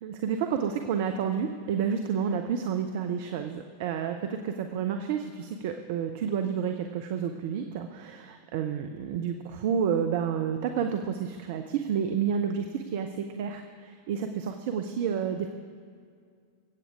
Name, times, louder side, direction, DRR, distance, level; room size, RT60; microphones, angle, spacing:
voice 1, 0.0-15.5, right 7 dB, 50° right, 6 dB, 0.6 m, -30 dB
21.5 x 8.5 x 3.6 m, 2.2 s
figure-of-eight pair, 90°, 0 cm